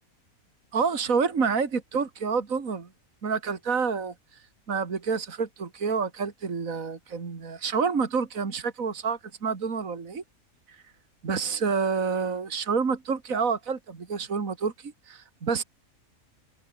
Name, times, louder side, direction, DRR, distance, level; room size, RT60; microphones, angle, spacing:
voice 1, 0.7-2.9 3.2-4.1 4.7-10.2 10.7-10.8 11.2-15.6, right 5 dB, 65° right, 2.6 m, -28 dB
omnidirectional pair, 1.5 m